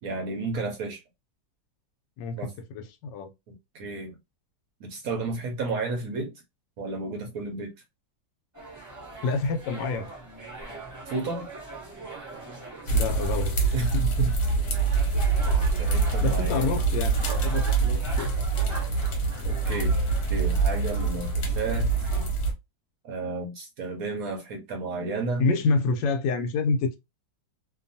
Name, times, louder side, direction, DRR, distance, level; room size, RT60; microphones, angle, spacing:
voice 1, 0.0-1.0 2.4-2.5 3.7-4.2 4.8-6.3 6.8-7.7 11.1-11.4 13.7-14.3 15.8-16.8 19.4-19.9 20.3-21.9 23.0-25.5, right 3 dB, 65° right, 0.9 m, -32 dB
voice 2, 2.2-3.3 9.2-10.1 12.9-13.6 13.9-14.0 16.2-18.3 25.4-27.0, left 4 dB, 80° left, 1.2 m, -27 dB
sound 1, 8.5-22.3, right 2 dB, 20° right, 0.5 m, -41 dB
sound 2, 12.9-22.5, right 4 dB, 60° left, 1.1 m, -25 dB
2.8 x 2.3 x 2.6 m
omnidirectional pair, 1.9 m